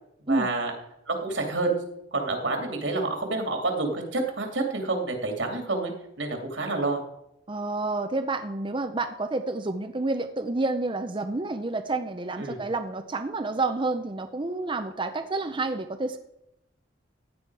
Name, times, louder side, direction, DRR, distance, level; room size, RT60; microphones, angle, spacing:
voice 1, 0.3-0.7 1.1-1.8 2.1-5.9 6.2-7.0 12.4-12.6, right 3 dB, 90° right, 3 dB, 2.6 m, -28 dB
voice 2, 7.5-16.2, right 2 dB, 25° right, 6 dB, 0.7 m, -29 dB
15.5 x 9.3 x 4.7 m, 0.85 s
head